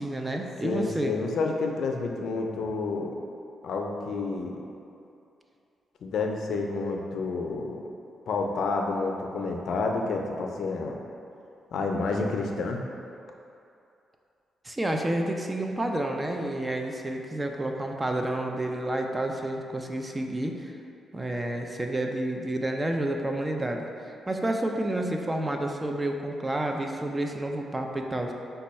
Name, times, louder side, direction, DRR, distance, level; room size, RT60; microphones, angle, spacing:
voice 1, 0.0-1.2 14.6-20.7 21.1-28.3, right 1 dB, 15° right, 3 dB, 0.3 m, -30 dB
voice 2, 0.6-3.1 3.6-4.6 6.0-7.8 8.3-11.0 11.7-12.9, left 3 dB, 70° left, 2 dB, 0.4 m, -29 dB
5.3 x 2.3 x 4.1 m, 2.6 s
cardioid pair, 115°, 0 cm